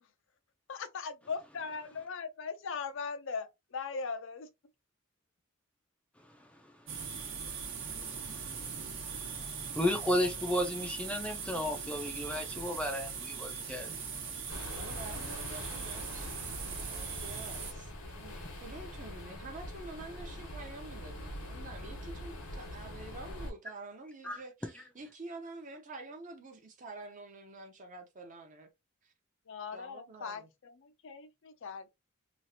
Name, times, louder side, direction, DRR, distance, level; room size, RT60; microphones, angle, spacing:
voice 1, 0.7-4.5 29.5-31.9, left 5 dB, 60° left, 0.5 m, -39 dB
sound 1, 6.9-17.7, right 6 dB, 60° right, 0.9 m, -40 dB
voice 2, 7.5-7.9 8.9-9.0 9.7-14.0 24.2-24.4, left 1 dB, 5° left, 0.4 m, -33 dB
sound 2, 14.5-23.5, left 1 dB, 85° left, 1.2 m, -43 dB
voice 3, 14.7-16.3 16.9-28.7 29.0-29.1 29.7-30.5, right 2 dB, 35° right, 0.7 m, -48 dB
3.1 x 2.4 x 2.7 m
head